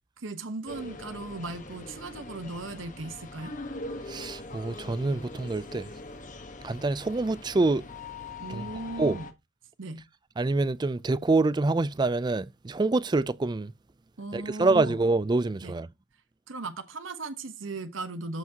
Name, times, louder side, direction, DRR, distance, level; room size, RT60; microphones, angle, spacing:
voice 1, 0.2-3.5 8.4-9.3 9.8-10.0 14.2-15.0 15.6-15.7 16.5-18.4, right 3 dB, 80° right, 1.1 m, -37 dB
sound 1, 0.7-9.3, left 2 dB, 40° left, 1.2 m, -42 dB
voice 2, 4.1-5.9 6.6-7.8 8.5-8.6 9.0-9.2 10.4-13.7 14.3-15.9, right 3 dB, 20° right, 0.4 m, -26 dB
14.0 x 4.8 x 2.9 m
head